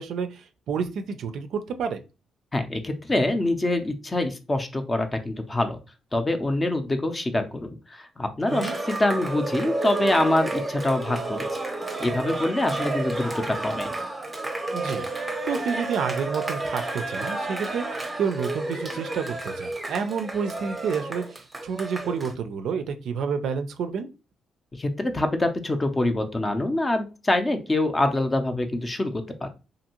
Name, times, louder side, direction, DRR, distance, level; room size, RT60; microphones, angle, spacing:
voice 1, 0.0-2.0 8.5-8.8 14.7-15.1 15.5-21.2 21.6-24.1, right 6 dB, 70° right, 8 dB, 0.4 m, -29 dB
voice 2, 2.5-5.8 6.1-11.6 12.0-13.9 24.8-29.5, left 1 dB, 20° left, 8 dB, 0.5 m, -25 dB
Cheering, 8.5-22.3, right 2 dB, 20° right, 0.7 m, -31 dB
2.6 x 2.5 x 2.9 m, 0.31 s
cardioid pair, 90°, 0 cm